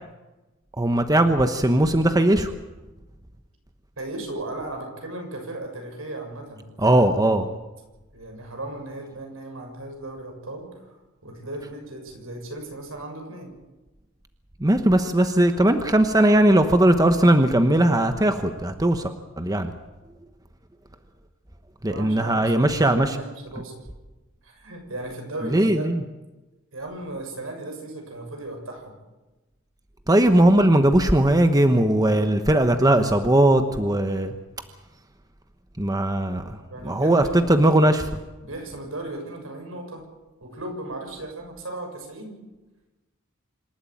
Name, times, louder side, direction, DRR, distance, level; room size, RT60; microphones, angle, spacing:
voice 1, 0.8-2.5 6.8-7.4 14.6-19.7 21.8-23.1 25.4-26.0 30.1-34.3 35.8-36.6 36.8-38.0, right 1 dB, 20° right, 7 dB, 1.1 m, -19 dB
voice 2, 4.0-7.3 8.1-10.9 11.2-13.5 21.9-23.8 24.4-25.9 26.7-29.0 36.7-37.9 38.4-40.0 40.4-42.4, right 2 dB, 80° right, 3 dB, 6.9 m, -36 dB
26.5 x 13.0 x 9.3 m, 1.1 s
head